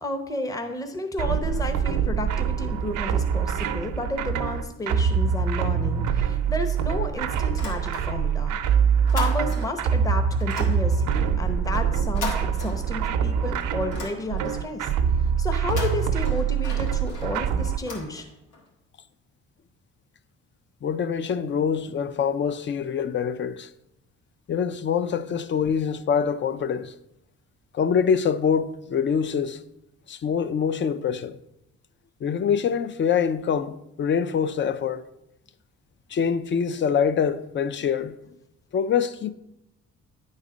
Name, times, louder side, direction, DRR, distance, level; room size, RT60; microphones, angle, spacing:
voice 1, 0.0-8.6 9.1-14.9 15.4-18.3, left 1 dB, 10° left, 0.8 m, -32 dB
sound 1, 1.2-17.8, right 7 dB, 85° right, 0.7 m, -24 dB
sound 2, 7.5-8.4 8.7-9.9 10.4-13.2 13.6-14.7 15.5-18.6, left 3 dB, 80° left, 1.9 m, -38 dB
voice 2, 20.8-23.7 24.5-26.9 27.7-29.6 30.1-31.4 32.2-35.0 36.1-38.2 38.7-39.3, left 7 dB, 40° left, 0.5 m, -25 dB
9.6 x 4.1 x 5.0 m
cardioid pair, 90°, 30 cm